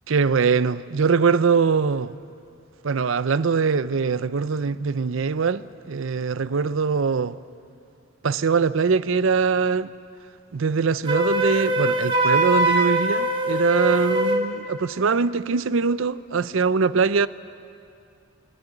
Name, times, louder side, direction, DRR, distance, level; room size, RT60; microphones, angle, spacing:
voice 1, 0.1-2.2 2.8-7.4 8.2-9.9 10.5-17.3, right 5 dB, 65° right, 0.5 m, -22 dB
Wind instrument woodwind instrument, 11.0-14.5, right 1 dB, 25° right, 1.4 m, -22 dB
20.0 x 17.0 x 9.7 m
head